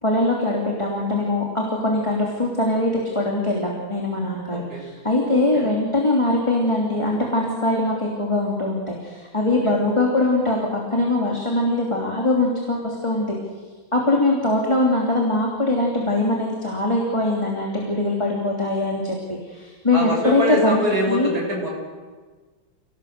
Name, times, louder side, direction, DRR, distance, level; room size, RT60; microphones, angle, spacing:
voice 1, 0.0-13.4 13.9-21.3, left 2 dB, 15° left, -2 dB, 2.9 m, -22 dB
voice 2, 19.9-21.7, equal, 50° right, -1 dB, 7.6 m, -24 dB
29.5 x 19.0 x 6.7 m, 1.4 s
omnidirectional pair, 2.1 m